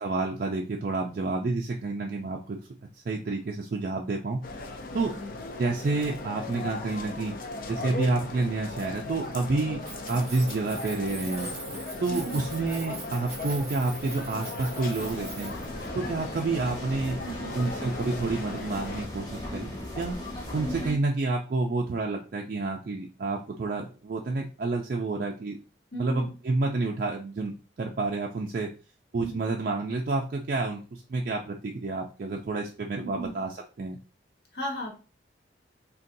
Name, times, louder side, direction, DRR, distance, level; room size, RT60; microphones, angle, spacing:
voice 1, 0.0-2.6 3.1-4.4 4.9-5.1 5.6-7.3 7.7-9.8 10.1-11.5 12.0-15.5 15.9-17.2 17.5-20.2 20.5-25.6 26.0-28.7 29.1-34.0, right 3 dB, 50° right, 0 dB, 0.3 m, -29 dB
sound 1, 4.4-19.1, left 2 dB, 50° left, 0.5 m, -38 dB
voice 2, 4.9-5.3 12.1-12.4 17.2-17.6 20.6-21.0 25.9-26.3 29.2-29.4 33.0-33.3 34.5-34.9, right 1 dB, 70° left, 0 dB, 1.1 m, -36 dB
Keys jangling, 9.8-15.9, right 3 dB, 15° right, 0.8 m, -42 dB
sound 2, 14.9-20.9, left 1 dB, 25° left, 1.1 m, -38 dB
3.8 x 2.2 x 2.6 m, 0.33 s
head